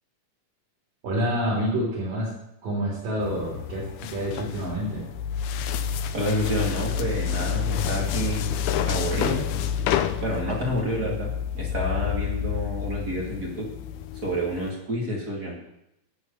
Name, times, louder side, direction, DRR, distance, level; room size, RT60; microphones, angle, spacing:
voice 1, 1.0-2.3 2.6-5.1 11.0-11.1, equal, 80° right, -5 dB, 5.1 m, -28 dB
sound 1, 3.2-14.7, left 8 dB, 80° left, 2.1 m, -29 dB
voice 2, 6.1-8.5 8.9-9.4 10.2-13.6 14.2-15.5, equal, 30° right, -3 dB, 2.9 m, -29 dB
10.5 x 7.0 x 8.4 m, 0.83 s
omnidirectional pair, 3.8 m